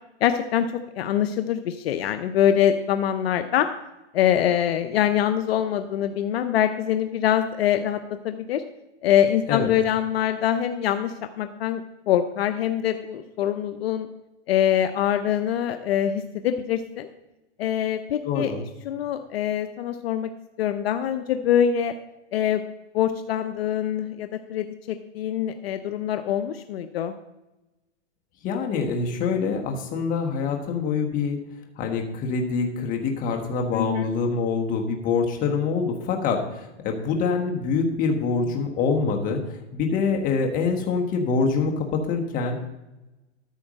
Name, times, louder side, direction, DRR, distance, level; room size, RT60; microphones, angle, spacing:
voice 1, 0.2-0.7 1.0-3.7 4.1-8.6 9.0-14.1 14.5-17.1 17.6-18.5 18.9-20.3 20.6-21.9 22.3-22.6 22.9-27.1 33.7-34.0, left 10 dB, 60° left, 9 dB, 0.7 m, -24 dB
voice 2, 18.2-18.6 28.4-31.4 31.8-39.4 39.7-42.6, left 5 dB, 25° left, 2 dB, 1.3 m, -25 dB
13.0 x 4.4 x 6.4 m, 0.99 s
hypercardioid pair, 145°, 34 cm